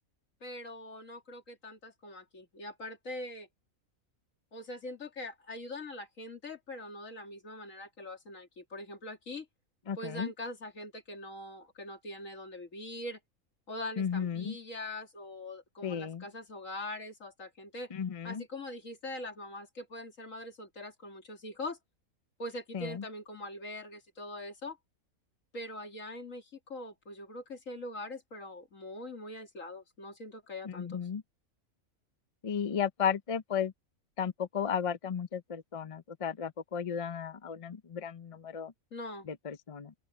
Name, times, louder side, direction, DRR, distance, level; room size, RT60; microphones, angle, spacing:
voice 1, 0.4-3.5 4.5-9.5 10.0-13.2 13.7-17.9 18.2-21.8 22.4-24.8 25.5-31.0 38.9-39.3, left 1 dB, 65° left, 3.0 m, -42 dB
voice 2, 9.9-10.3 14.0-14.6 15.8-16.2 17.9-18.4 22.7-23.0 30.6-31.2 32.4-33.7 34.2-38.7 39.3-39.9, left 7 dB, 40° left, 0.5 m, -34 dB
open air
omnidirectional pair, 1.5 m